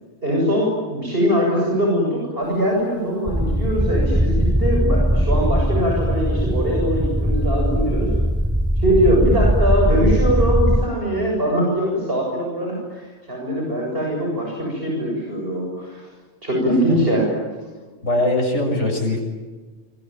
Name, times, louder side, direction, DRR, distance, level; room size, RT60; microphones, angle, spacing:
voice 1, 0.2-8.1 8.8-16.1 16.4-17.3, equal, 50° right, -1 dB, 7.6 m, -22 dB
sound 1, 3.3-10.9, equal, 5° right, 0.6 m, -20 dB
voice 2, 18.0-19.2, left 1 dB, 65° left, 3 dB, 7.2 m, -21 dB
26.5 x 24.0 x 9.1 m, 1.3 s
omnidirectional pair, 1.3 m